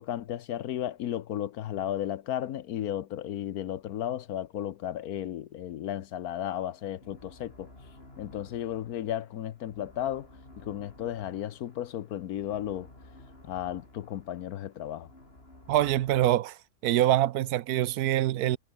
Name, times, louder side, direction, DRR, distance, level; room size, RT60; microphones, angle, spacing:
voice 1, 0.0-7.7 8.2-10.3 10.6-12.9 13.4-15.1, left 11 dB, 70° left, 1.2 m, -34 dB
sound 1, 6.3-16.3, left 2 dB, 35° left, 5.7 m, -54 dB
voice 2, 15.7-16.6 16.8-18.6, right 13 dB, 75° right, 1.1 m, -24 dB
omnidirectional pair, 1.7 m